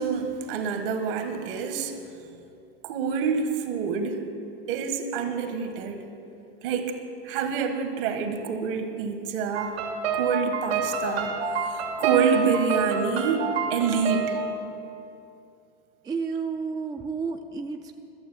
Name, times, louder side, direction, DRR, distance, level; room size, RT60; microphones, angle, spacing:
voice 1, 0.0-1.9 2.8-4.3 4.7-6.0 6.6-6.9 7.2-9.7 10.1-14.4, right 6 dB, 60° right, 7 dB, 1.5 m, -27 dB
sound 1, 9.5-14.6, right 4 dB, 85° right, 2.6 m, -28 dB
voice 2, 16.0-17.9, right 5 dB, 10° right, 4 dB, 0.5 m, -31 dB
12.0 x 7.1 x 7.6 m, 2.7 s
hypercardioid pair, 120°, 31 cm